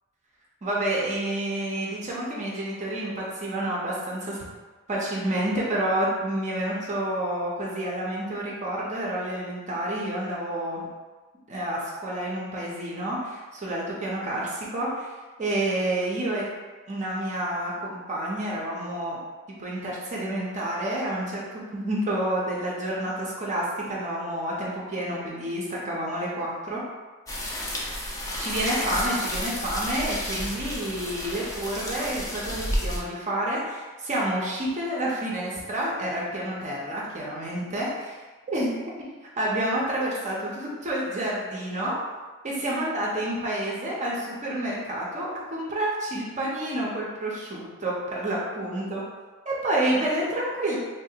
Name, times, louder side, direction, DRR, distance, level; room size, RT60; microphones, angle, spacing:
voice 1, 0.6-4.5 4.9-10.9 11.5-15.1 15.4-16.4 16.9-19.2 19.6-26.8 28.4-38.2 38.5-38.8 39.4-42.0 42.4-49.0 49.5-50.8, right 1 dB, 35° right, -5 dB, 0.5 m, -29 dB
sound 1, 27.3-33.0, left 1 dB, 15° left, 0.5 m, -31 dB
3.6 x 2.4 x 2.7 m, 1.3 s
head